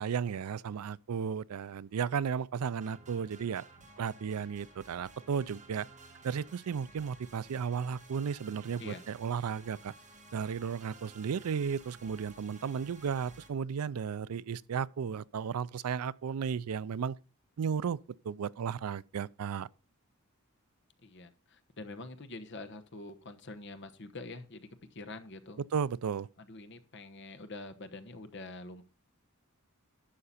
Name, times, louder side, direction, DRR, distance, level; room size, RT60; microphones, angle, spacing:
voice 1, 0.0-3.6 4.0-5.9 6.2-9.9 10.3-17.2 17.6-18.0 18.2-19.7 25.7-26.3, right 7 dB, 85° right, 0.4 m, -34 dB
sound 1, 2.8-13.5, right 3 dB, 35° right, 1.7 m, -55 dB
voice 2, 21.0-25.6 26.4-28.8, left 2 dB, 55° left, 1.1 m, -46 dB
11.5 x 6.8 x 4.2 m
head